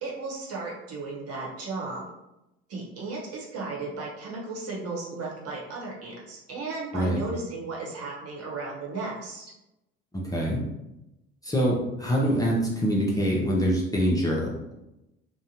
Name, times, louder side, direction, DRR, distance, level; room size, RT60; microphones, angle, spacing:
voice 1, 0.0-2.1 2.7-9.5, right 3 dB, 50° right, -3 dB, 1.1 m, -35 dB
voice 2, 10.1-10.6 11.4-14.7, equal, 10° left, -4 dB, 0.6 m, -25 dB
2.6 x 2.1 x 2.9 m, 0.91 s
hypercardioid pair, 65°, 31 cm